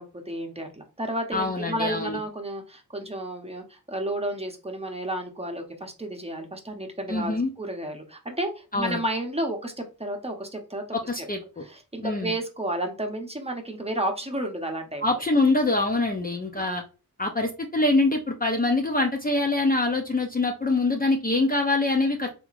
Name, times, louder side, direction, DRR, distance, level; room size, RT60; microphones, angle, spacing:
voice 1, 0.0-10.8 11.6-15.2 16.5-16.7, right 1 dB, 15° right, 3 dB, 0.9 m, -32 dB
voice 2, 1.3-2.2 7.1-7.5 8.7-9.0 11.1-11.6 12.0-12.3 15.0-16.8 17.2-22.3, left 2 dB, 25° left, 3 dB, 0.6 m, -24 dB
3.7 x 2.8 x 2.5 m, 0.32 s
cardioid pair, 55°, 37 cm